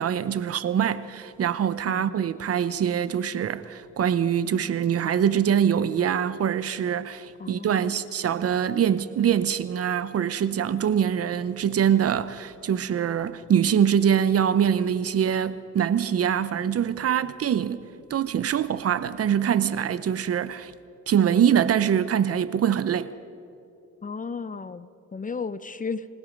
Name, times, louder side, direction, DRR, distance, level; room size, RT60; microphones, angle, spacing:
voice 1, 0.0-17.8 18.1-20.7 21.1-23.1, right 8 dB, 50° right, 0.8 m, -24 dB
voice 2, 1.9-2.2 7.4-8.2 24.0-26.1, left 5 dB, 25° left, 0.8 m, -35 dB
28.5 x 17.5 x 5.3 m
cardioid pair, 90°, 30 cm